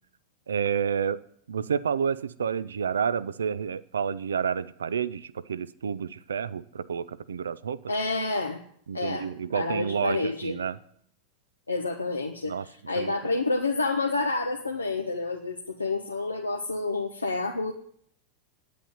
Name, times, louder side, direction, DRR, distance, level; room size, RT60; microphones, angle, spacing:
voice 1, 0.5-1.2 1.5-7.8 8.9-10.8 12.5-12.7 13.0-13.1, right 7 dB, 70° right, 16 dB, 0.6 m, -29 dB
voice 2, 7.9-8.6 8.9-9.3 9.5-10.6 11.7-17.7, left 3 dB, 80° left, 2 dB, 1.1 m, -29 dB
9.9 x 8.3 x 9.2 m, 0.66 s
figure-of-eight pair, 90°, 0 cm